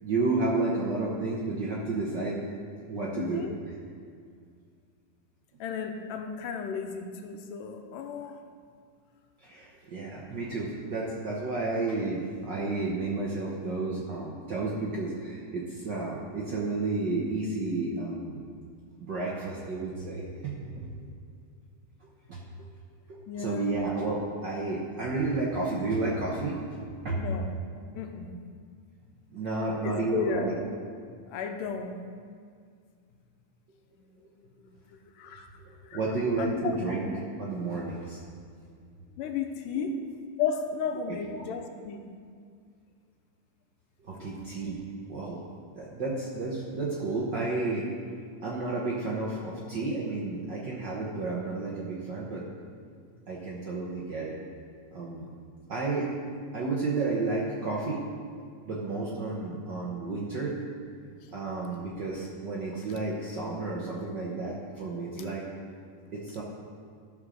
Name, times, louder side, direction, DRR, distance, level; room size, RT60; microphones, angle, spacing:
voice 1, 0.0-2.4 2.9-3.4 9.4-18.5 19.0-20.9 22.3-22.7 23.1-26.6 27.0-27.2 29.3-30.5 35.2-35.3 35.6-38.2 39.7-39.9 41.3-41.5 44.0-44.8 45.1-45.4 45.7-47.9 48.4-52.4 53.3-54.4 54.9-55.3 55.7-56.1 56.5-58.0 58.6-60.6 61.3-65.5 66.1-66.4, right 3 dB, 85° right, -5 dB, 0.9 m, -31 dB
voice 2, 3.2-3.6 5.6-8.4 23.3-23.8 27.1-27.5 28.0-28.3 29.8-30.5 31.3-32.0 34.6-35.5 35.8-36.0 36.4-36.8 39.2-40.0 40.4-42.0, left 6 dB, 85° left, 5 dB, 2.4 m, -34 dB
13.5 x 5.5 x 6.3 m, 2.2 s
omnidirectional pair, 3.7 m